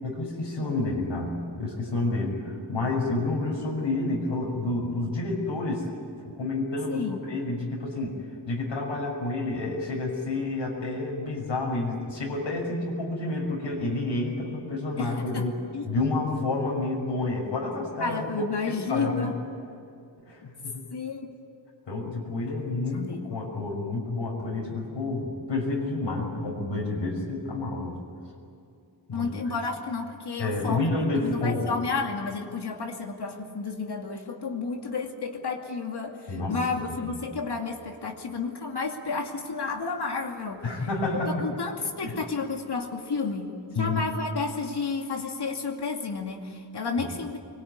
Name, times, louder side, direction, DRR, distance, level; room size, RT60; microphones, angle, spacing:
voice 1, 0.0-5.9 6.2-8.2 8.5-15.5 15.9-18.2 18.6-19.3 20.3-20.8 21.9-28.0 29.1-29.3 30.4-31.7 36.3-37.2 40.6-41.4 42.0-42.1 43.7-44.0, left 2 dB, 90° left, -2 dB, 6.2 m, -29 dB
voice 2, 6.9-7.2 15.0-15.9 18.0-19.4 20.9-21.3 22.9-23.3 29.1-30.8 31.2-40.9 41.1-47.4, left 4 dB, 65° left, 2 dB, 2.7 m, -31 dB
25.0 x 22.5 x 9.6 m, 2.5 s
wide cardioid pair, 160°, 44 cm